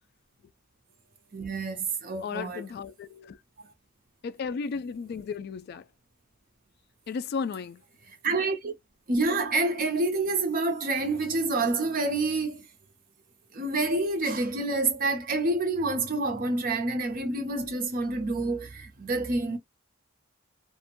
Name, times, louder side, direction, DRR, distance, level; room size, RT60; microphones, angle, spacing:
voice 1, 1.3-2.6 8.1-8.7 9.1-12.7 13.5-19.6, right 2 dB, 45° right, 0.6 m, -28 dB
voice 2, 2.2-3.4 4.2-5.8 7.1-7.8, left 5 dB, 55° left, 0.3 m, -34 dB
2.5 x 2.1 x 2.8 m
head